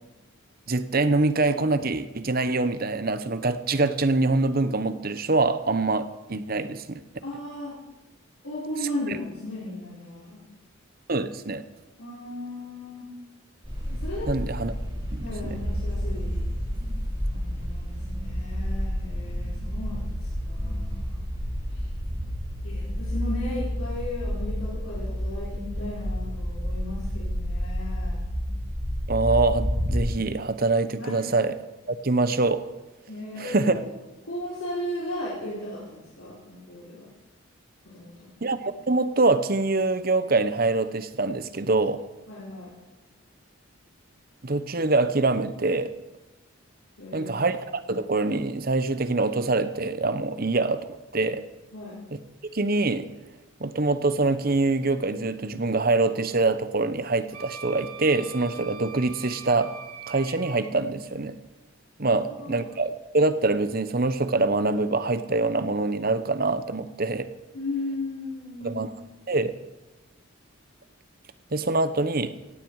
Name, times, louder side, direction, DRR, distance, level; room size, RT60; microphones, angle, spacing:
voice 1, 0.7-7.0 11.1-11.6 14.3-14.7 15.1-15.6 29.1-31.5 31.9-32.6 33.4-33.7 38.4-42.0 44.4-45.9 47.1-51.4 52.5-53.1 53.6-59.8 60.1-61.3 62.0-67.3 68.6-68.9 69.3-69.5 71.5-72.3, right 3 dB, 45° right, 12 dB, 0.9 m, -24 dB
voice 2, 7.2-7.8 8.4-10.4 12.0-13.1 13.9-14.3 15.2-16.4 17.3-21.2 21.7-21.8 22.6-28.3 31.0-31.2 33.1-33.8 34.2-37.1 37.8-38.3 42.3-42.7 47.0-47.5 51.7-52.0 62.3-62.6 67.5-68.9, left 1 dB, 80° left, -7 dB, 4.7 m, -36 dB
sound 1, 13.6-30.0, equal, 25° right, 4.4 m, -30 dB
Wind instrument woodwind instrument, 57.3-60.7, right 6 dB, 90° right, 2.6 m, -42 dB
17.0 x 16.5 x 4.8 m, 1.1 s
head